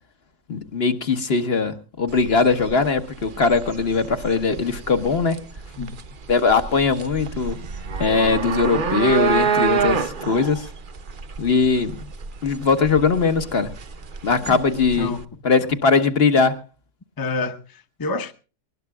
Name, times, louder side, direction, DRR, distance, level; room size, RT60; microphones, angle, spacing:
voice 1, 0.5-5.4 6.3-7.6 8.0-10.7 11.4-12.1 12.4-13.7 14.2-15.1 15.4-16.6, left 4 dB, 55° left, 1.5 m, -20 dB
sound 1, 2.1-15.2, right 6 dB, 45° right, 1.0 m, -28 dB
voice 2, 17.2-18.3, left 3 dB, 20° left, 0.9 m, -28 dB
22.0 x 19.5 x 2.3 m
omnidirectional pair, 1.3 m